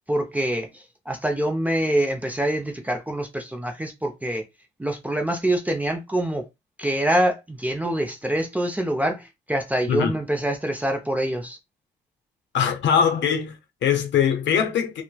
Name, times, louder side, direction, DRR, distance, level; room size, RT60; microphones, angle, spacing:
voice 1, 0.1-4.4 4.8-6.5 6.8-11.6, right 1 dB, 10° right, 0.5 m, -25 dB
voice 2, 12.5-15.0, left 8 dB, 65° left, 0.6 m, -22 dB
3.0 x 2.1 x 2.2 m
cardioid pair, 90°, 20 cm